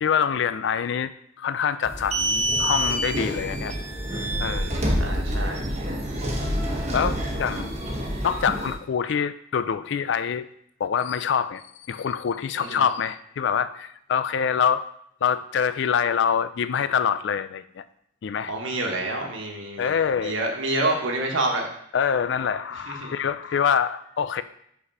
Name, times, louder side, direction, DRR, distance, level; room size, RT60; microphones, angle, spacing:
voice 1, 0.0-1.1 1.4-3.7 4.4-4.8 6.9-7.7 8.2-10.5 10.8-14.8 15.2-17.8 18.2-18.5 19.8-20.4 21.9-24.4, left 7 dB, 60° left, 14 dB, 0.4 m, -25 dB
sound 1, 1.8-8.7, equal, 35° right, 1.1 m, -27 dB
voice 2, 4.6-5.6 12.6-12.8 18.5-21.7 22.8-23.1, right 2 dB, 75° right, 1 dB, 1.3 m, -28 dB
5.5 x 4.1 x 5.4 m, 0.71 s
head